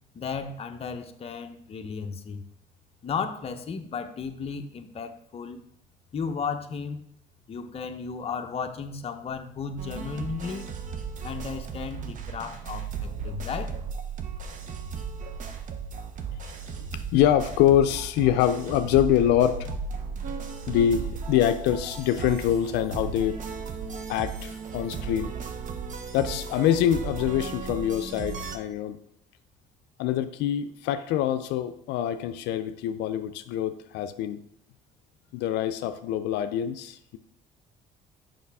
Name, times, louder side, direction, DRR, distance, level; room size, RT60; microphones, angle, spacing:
voice 1, 0.1-2.4 3.0-5.6 6.1-7.0 7.5-10.7 11.2-13.8, left 5 dB, 35° left, 6 dB, 0.7 m, -34 dB
sound 1, 9.8-28.6, right 5 dB, 50° right, 0.8 m, -35 dB
voice 2, 16.7-19.7 20.7-23.4 24.1-25.3 26.1-29.0 30.0-34.4 35.3-37.2, left 11 dB, 90° left, 10 dB, 0.4 m, -25 dB
7.1 x 5.5 x 3.4 m, 0.71 s
cardioid pair, 110°, 17 cm